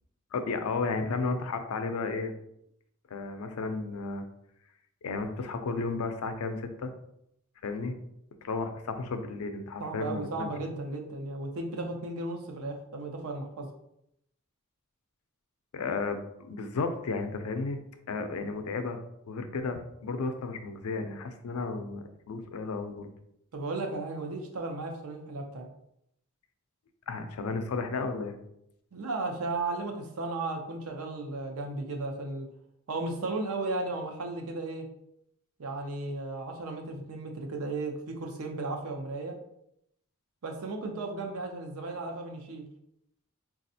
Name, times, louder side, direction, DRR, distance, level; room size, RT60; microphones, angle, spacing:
voice 1, 0.3-2.3 3.1-4.3 5.0-6.9 7.6-7.9 8.4-10.5 15.7-17.8 18.1-19.0 19.3-23.1 27.1-28.4, left 4 dB, 90° left, 7 dB, 0.4 m, -33 dB
voice 2, 9.8-13.7 23.5-25.7 28.9-32.5 32.9-34.9 35.6-39.3 40.4-42.6, right 2 dB, 80° right, 3 dB, 0.6 m, -35 dB
4.0 x 2.4 x 2.7 m, 0.77 s
head